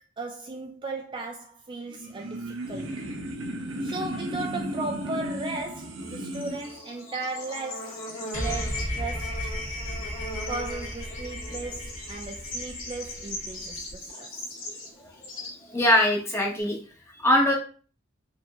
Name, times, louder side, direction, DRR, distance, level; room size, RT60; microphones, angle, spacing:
voice 1, 0.2-3.1 3.8-8.0 8.3-9.4 10.5-14.3, right 3 dB, 25° right, 0.4 m, -36 dB
sound 1, 1.8-6.7, equal, 85° right, 0.8 m, -34 dB
Bird / Insect, 6.0-16.6, left 1 dB, 85° left, 1.9 m, -39 dB
sound 2, 8.3-13.9, left 1 dB, 40° left, 2.0 m, -35 dB
voice 2, 15.2-16.8 17.1-17.6, left 1 dB, 15° left, 0.9 m, -23 dB
4.9 x 2.9 x 2.4 m
head